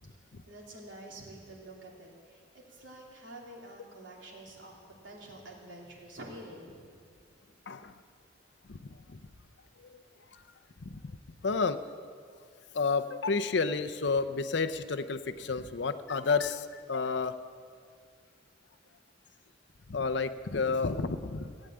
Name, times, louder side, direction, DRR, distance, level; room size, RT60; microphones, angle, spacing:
voice 1, 0.5-4.7 5.0-6.8, right 1 dB, 70° right, -2 dB, 3.2 m, -48 dB
voice 2, 8.7-9.2 9.8-10.0 10.3-10.4 10.8-11.2 11.4-11.8 12.7-17.3 19.9-21.5, left 4 dB, 60° left, 11 dB, 0.6 m, -31 dB
16.5 x 9.0 x 8.7 m, 2.2 s
head